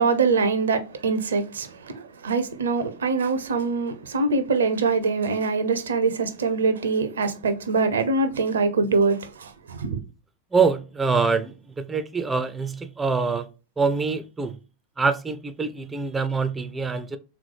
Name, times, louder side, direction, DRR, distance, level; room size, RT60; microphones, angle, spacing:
voice 1, 0.0-10.0, right 4 dB, 65° right, 0.6 m, -24 dB
voice 2, 10.5-11.5 11.9-13.4 13.8-14.5 15.0-17.2, right 4 dB, 15° right, 0.4 m, -24 dB
3.6 x 3.1 x 4.7 m
figure-of-eight pair, 90°, 0 cm